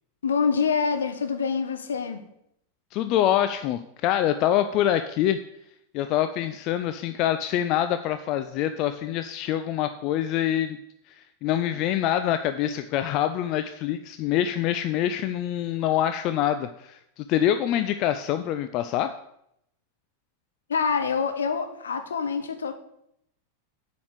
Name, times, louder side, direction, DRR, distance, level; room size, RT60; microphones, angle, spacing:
voice 1, 0.2-2.2 20.7-22.7, left 5 dB, 65° left, 8 dB, 1.0 m, -26 dB
voice 2, 2.9-5.4 5.9-10.8 11.1-19.1, left 11 dB, 40° left, 9 dB, 0.4 m, -25 dB
7.9 x 5.1 x 6.6 m, 0.75 s
figure-of-eight pair, 90°, 0 cm